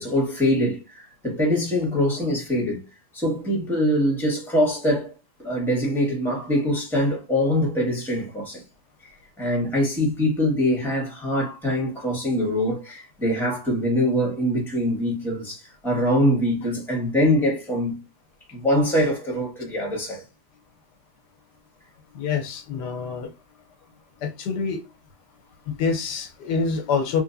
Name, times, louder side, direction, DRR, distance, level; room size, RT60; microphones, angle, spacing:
voice 1, 0.0-2.8 3.1-5.1 5.4-8.6 9.0-9.1 9.4-18.0 18.5-20.2, equal, ahead, 1.2 m, -23 dB
voice 2, 22.1-23.3 24.2-24.8 25.7-27.2, left 5 dB, 85° left, 1.4 m, -26 dB
3.4 x 3.2 x 2.6 m
omnidirectional pair, 1.8 m